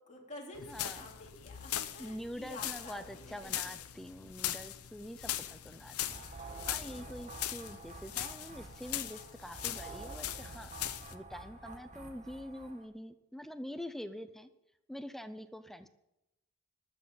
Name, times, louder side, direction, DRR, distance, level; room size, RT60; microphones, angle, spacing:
voice 1, 0.0-3.5 6.8-7.3, left 2 dB, 35° left, -2 dB, 3.5 m, -50 dB
sound 1, 0.5-11.1, left 12 dB, 90° left, 0.9 m, -41 dB
voice 2, 0.7-1.0 2.0-10.7 11.1-14.5 14.9-15.9, equal, ahead, 10 dB, 0.6 m, -45 dB
sound 2, 6.0-12.8, right 3 dB, 35° right, 1.9 m, -49 dB
13.0 x 7.6 x 9.5 m, 0.90 s
head